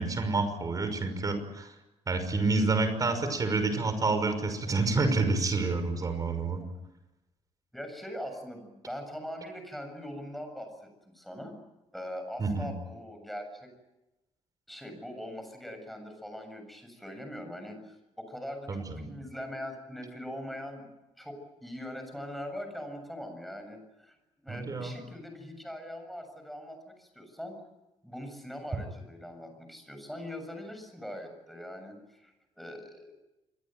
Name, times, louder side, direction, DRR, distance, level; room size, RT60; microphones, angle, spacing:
voice 1, 0.0-1.7 2.1-6.6 12.4-12.7 18.7-19.1 24.5-25.0, right 3 dB, 30° right, 9 dB, 5.8 m, -28 dB
voice 2, 7.7-11.5 11.9-13.7 14.7-20.9 21.2-24.2 24.4-27.6 28.0-33.1, equal, ahead, 5 dB, 7.4 m, -42 dB
27.5 x 22.5 x 9.2 m, 0.99 s
cardioid pair, 135°, 12 cm